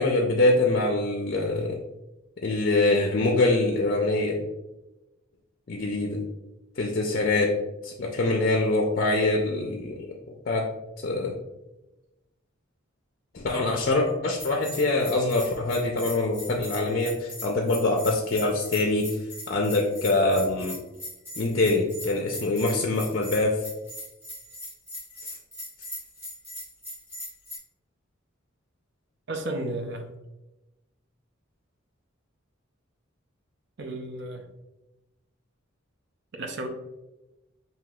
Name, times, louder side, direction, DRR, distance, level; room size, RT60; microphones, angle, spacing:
voice 1, 0.0-1.8 2.4-4.4 5.7-6.2 6.8-7.6 7.8-10.1 10.5-10.7 11.0-11.3 13.3-19.2 19.5-20.8 21.4-23.6, left 2 dB, 45° left, 1 dB, 0.4 m, -24 dB
Bell, 14.4-27.6, left 1 dB, 10° right, 1.4 m, -40 dB
voice 2, 29.3-30.1 33.8-34.5 36.3-36.7, right 2 dB, 55° right, 4 dB, 0.6 m, -33 dB
5.8 x 2.8 x 2.3 m, 1.0 s
head